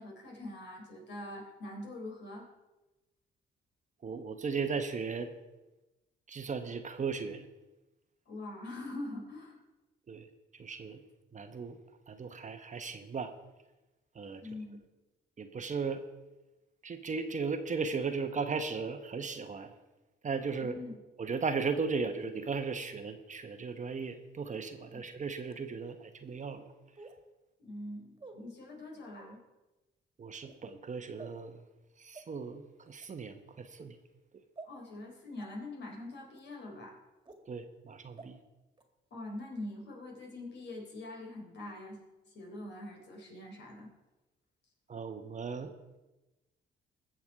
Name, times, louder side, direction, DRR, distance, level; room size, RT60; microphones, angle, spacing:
voice 1, 0.0-2.5 8.3-9.6 14.4-14.8 20.6-20.9 24.9-25.0 27.6-29.4 34.6-37.0 39.1-42.0 42.3-43.9, left 1 dB, 60° left, 0 dB, 3.9 m, -44 dB
voice 2, 4.0-5.3 6.3-7.4 10.1-10.3 10.6-11.0 11.3-11.8 12.1-13.3 14.1-14.4 15.4-16.0 16.8-19.7 20.2-20.7 21.2-26.7 30.2-31.6 32.0-34.0 37.5-38.4 44.9-45.7, right 5 dB, 40° right, 8 dB, 1.1 m, -36 dB
sound 1, 24.5-24.6 25.5-25.6 27.0-27.2 28.2-28.4 29.2-29.4 30.3-30.6 31.2-31.4 32.1-32.2 32.9-33.1 33.8-33.9 34.6-34.7 35.4-35.5 36.3-36.4 37.3-37.4 38.2-38.3 38.8-38.9, right 3 dB, 20° right, 2.0 m, -50 dB
20.0 x 7.2 x 4.8 m, 1.1 s
cardioid pair, 90°, 20 cm